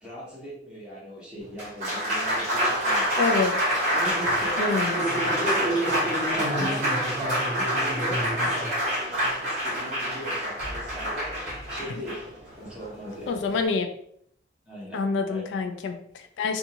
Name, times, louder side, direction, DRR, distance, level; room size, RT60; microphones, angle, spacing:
voice 1, 0.0-3.3 3.9-5.1 5.5-7.0 7.4-12.3 12.5-13.4 14.7-15.0 15.3-15.4, equal, 5° right, -8 dB, 1.0 m, -39 dB
Applause, 1.4-13.7, equal, 40° right, 1.0 m, -26 dB
voice 2, 3.2-3.6 4.6-5.0 13.3-13.9 14.9-16.6, left 4 dB, 80° left, 6 dB, 0.3 m, -26 dB
2.6 x 2.4 x 2.8 m, 0.66 s
head